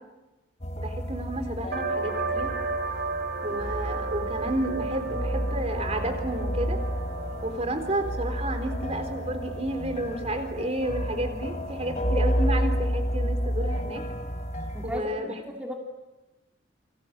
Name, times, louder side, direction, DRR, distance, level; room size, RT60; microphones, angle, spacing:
sound 1, 0.6-15.0, equal, 35° left, 2.9 m, -31 dB
voice 1, 0.8-2.5 3.4-6.8 7.4-14.0 14.8-15.3, right 1 dB, 30° right, 6 dB, 3.8 m, -31 dB
sound 2, 1.7-13.0, right 4 dB, 45° right, 1.8 m, -35 dB
voice 2, 14.7-15.7, equal, 5° right, 0 dB, 2.4 m, -36 dB
29.0 x 24.0 x 7.9 m, 1.1 s
head